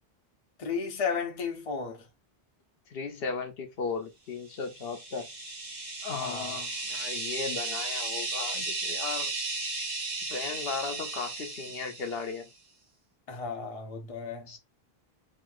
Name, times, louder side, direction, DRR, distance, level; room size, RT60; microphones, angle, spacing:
voice 1, 0.6-2.1 6.2-6.6 13.3-14.5, left 5 dB, 40° left, 0.7 m, -34 dB
voice 2, 2.9-5.3 6.0-9.3 10.3-12.5 14.5-14.6, left 5 dB, 75° left, 0.9 m, -36 dB
sound 1, 4.6-12.4, right 3 dB, 45° right, 1.0 m, -35 dB
3.0 x 2.8 x 2.4 m
omnidirectional pair, 1.0 m